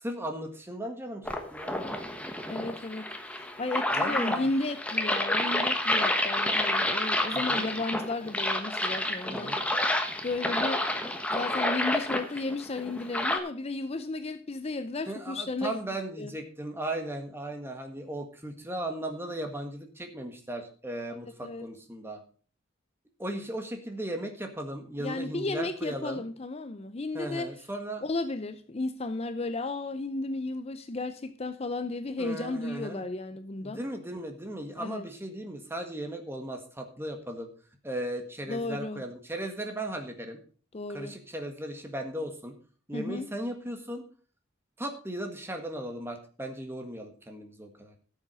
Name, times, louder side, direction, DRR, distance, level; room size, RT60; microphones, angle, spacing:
voice 1, 0.0-1.8 3.9-4.5 7.3-7.7 9.3-9.6 15.1-22.2 23.2-26.2 27.1-28.0 32.2-33.0 33.6-37.5 37.8-40.4 40.9-42.5 42.9-44.0 44.8-47.9, right 1 dB, 10° right, 4 dB, 1.6 m, -37 dB
sound 1, 1.3-13.4, left 1 dB, 5° left, 1.2 m, -29 dB
voice 2, 2.5-9.6 10.2-10.9 11.3-15.8 16.2-16.3 21.4-21.7 25.0-27.5 28.0-33.8 34.8-35.0 38.5-39.0 40.7-41.1 42.9-43.3, left 2 dB, 30° left, 10 dB, 0.6 m, -34 dB
13.5 x 7.4 x 4.9 m, 0.40 s
head